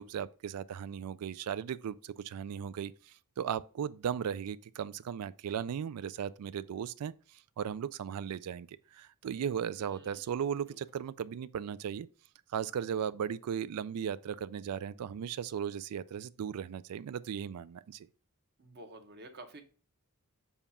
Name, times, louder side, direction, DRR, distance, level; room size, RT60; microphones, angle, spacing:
voice 1, 0.0-7.1 7.6-12.1 12.5-18.1, right 8 dB, 90° right, 0.3 m, -37 dB
voice 2, 9.8-10.8 18.6-19.6, right 2 dB, 45° right, 1.0 m, -52 dB
7.1 x 2.4 x 5.4 m
head